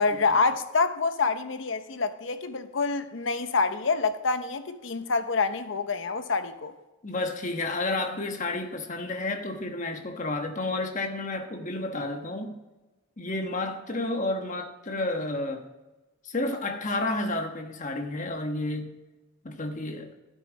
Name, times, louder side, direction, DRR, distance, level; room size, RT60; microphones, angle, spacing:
voice 1, 0.0-6.7, left 4 dB, 60° left, 0.7 m, -27 dB
voice 2, 7.0-12.5 13.2-15.6 16.2-19.0 19.4-20.1, left 2 dB, 35° left, 1.2 m, -31 dB
12.5 x 8.7 x 4.0 m
head